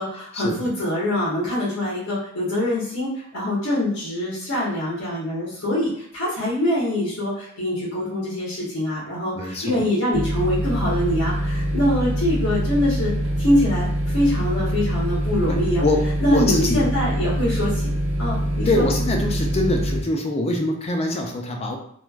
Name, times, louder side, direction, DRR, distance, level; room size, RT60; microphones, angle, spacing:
voice 1, 0.0-13.1 13.4-15.8 16.2-17.9 18.2-18.9, left 1 dB, 85° left, -7 dB, 1.0 m, -24 dB
voice 2, 9.3-9.9 15.4-16.9 18.7-21.8, left 1 dB, 30° left, 2 dB, 0.4 m, -24 dB
sound 1, 10.1-20.0, right 1 dB, 80° right, 0.9 m, -24 dB
3.1 x 2.4 x 2.3 m, 0.66 s
head